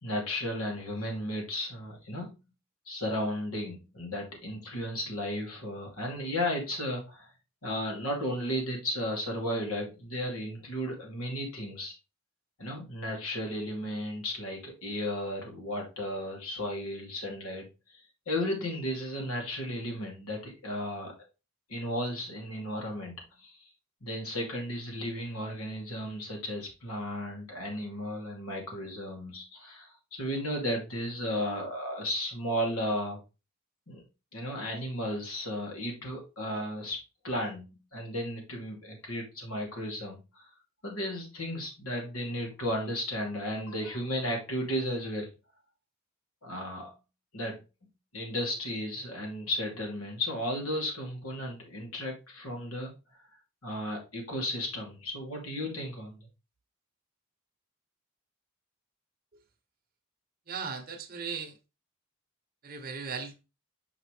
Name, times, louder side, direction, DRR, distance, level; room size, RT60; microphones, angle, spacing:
voice 1, 0.0-2.4 2.9-7.3 7.6-11.9 12.6-21.1 21.7-23.7 24.0-33.2 33.9-34.0 34.3-37.0 37.2-40.5 40.8-45.3 46.4-46.9 47.3-47.6 48.1-52.9 53.6-56.3, equal, 85° left, 2.7 m, -34 dB
voice 2, 60.5-61.5 62.6-63.4, right 5 dB, 45° right, 0.9 m, -37 dB
5.7 x 5.6 x 3.3 m
head